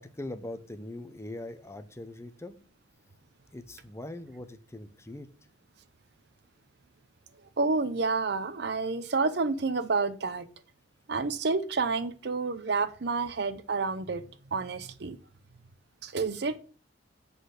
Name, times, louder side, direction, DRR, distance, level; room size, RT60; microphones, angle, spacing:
voice 1, 0.0-2.6 3.5-5.3, left 1 dB, 15° left, 0.7 m, -41 dB
voice 2, 7.6-10.5 11.1-14.2 14.5-15.2 16.0-16.6, right 4 dB, 60° right, 0.6 m, -29 dB
7.9 x 4.1 x 6.4 m
head